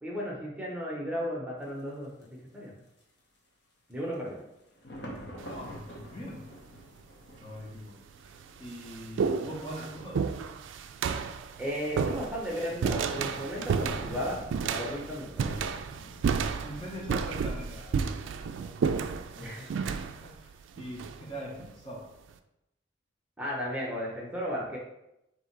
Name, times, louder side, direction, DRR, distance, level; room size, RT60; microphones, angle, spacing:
voice 1, 0.0-2.7 3.9-4.4 11.6-15.7 19.4-19.9 23.4-24.8, equal, 5° right, -4 dB, 0.8 m, -35 dB
sound 1, 1.6-1.7 2.2-2.3 3.0-3.4 3.9-19.1, equal, 55° left, 0.9 m, -49 dB
voice 2, 5.4-6.4 7.4-8.0 8.2-10.2 16.6-18.2 18.5-18.7 19.4-19.8 20.0-22.1, equal, 25° left, -2 dB, 0.7 m, -42 dB
sound 2, 5.4-5.8 6.8-6.9 7.7-7.8 8.2-21.7, right 6 dB, 80° right, 0.3 m, -32 dB
3.6 x 2.8 x 4.4 m, 0.87 s
head